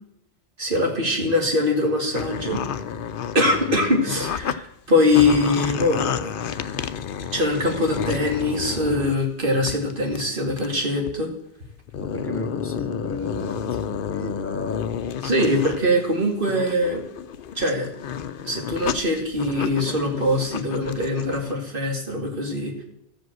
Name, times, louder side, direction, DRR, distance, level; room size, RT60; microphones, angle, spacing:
voice 1, 0.6-2.6 3.3-6.3 7.3-11.3 15.2-17.0 17.6-17.9 18.4-22.7, left 1 dB, 55° right, 1 dB, 2.4 m, -22 dB
sound 1, 2.1-4.6 4.9-9.2 9.7-10.2 10.6-10.7 11.1-11.2 11.8-15.8 16.2-21.5, left 8 dB, 60° left, 0.7 m, -30 dB
voice 2, 12.0-14.9, left 2 dB, 15° left, 5 dB, 1.0 m, -34 dB
13.5 x 5.2 x 7.7 m, 0.80 s
omnidirectional pair, 1.1 m